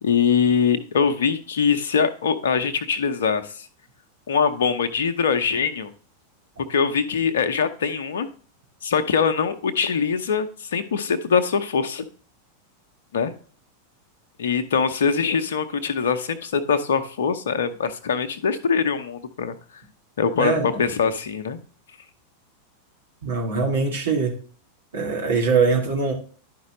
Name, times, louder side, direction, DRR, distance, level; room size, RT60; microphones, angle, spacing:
voice 1, 0.0-3.7 4.3-5.9 6.7-8.3 8.8-12.0 13.1-13.3 14.4-19.6 20.2-21.6, left 6 dB, 60° left, 11 dB, 0.8 m, -23 dB
voice 2, 20.4-20.8 23.2-24.4 24.9-26.1, right 4 dB, 65° right, -1 dB, 2.2 m, -22 dB
11.0 x 5.3 x 3.1 m, 0.42 s
figure-of-eight pair, 90°, 0 cm